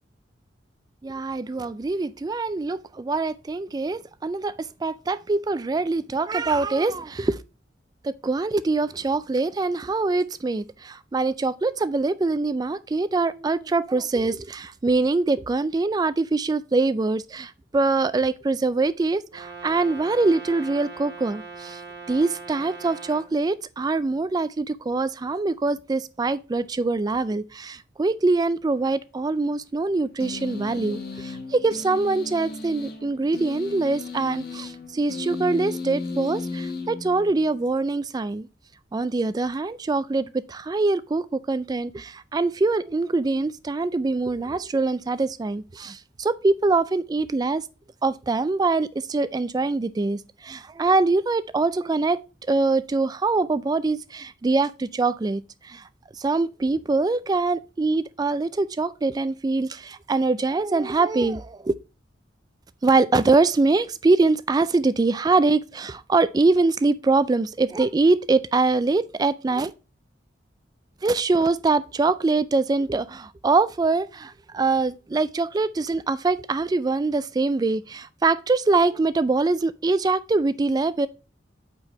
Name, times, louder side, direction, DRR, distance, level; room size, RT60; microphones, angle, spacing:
voice 1, 1.0-7.4 8.0-21.8 22.1-38.5 38.9-47.6 48.0-52.2 52.5-55.8 56.2-61.7 62.8-69.7 71.0-81.1, right 3 dB, 20° right, 0.3 m, -23 dB
Brass instrument, 19.3-23.3, right 4 dB, 65° right, 1.4 m, -40 dB
sound 1, 30.2-37.6, left 3 dB, 55° left, 1.3 m, -35 dB
8.5 x 4.6 x 3.0 m
head